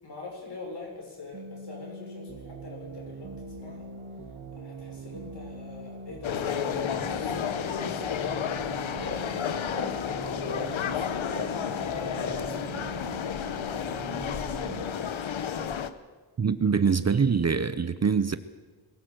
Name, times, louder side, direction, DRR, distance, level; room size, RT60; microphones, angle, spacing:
voice 1, 0.0-3.9 4.5-6.7 7.0-8.6 9.0-14.0 14.6-15.7, left 3 dB, 55° left, 0 dB, 6.9 m, -44 dB
sound 1, 1.3-14.9, right 3 dB, 80° right, 3.4 m, -42 dB
sound 2, 6.2-15.9, left 8 dB, 75° left, 1.1 m, -31 dB
sound 3, 9.0-9.3 9.6-10.0 10.4-10.8 11.3-11.5 12.2-12.5, left 3 dB, 30° left, 1.7 m, -36 dB
voice 2, 16.4-18.4, right 6 dB, 35° right, 12 dB, 0.7 m, -24 dB
22.0 x 17.5 x 7.9 m, 1.4 s
wide cardioid pair, 145°, 48 cm